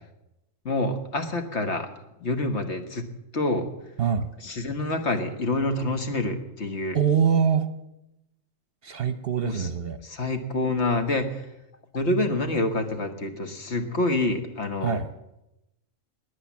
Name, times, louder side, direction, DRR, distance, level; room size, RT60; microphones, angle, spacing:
voice 1, 0.6-1.9 2.2-3.1 3.3-3.7 4.4-7.0 9.4-9.7 10.0-11.4 11.9-15.0, left 2 dB, 60° left, 6 dB, 1.7 m, -27 dB
voice 2, 4.0-4.3 6.9-7.7 8.8-10.0 14.8-15.1, right 7 dB, 50° right, 12 dB, 0.9 m, -24 dB
21.0 x 8.4 x 7.2 m, 0.89 s
omnidirectional pair, 1.3 m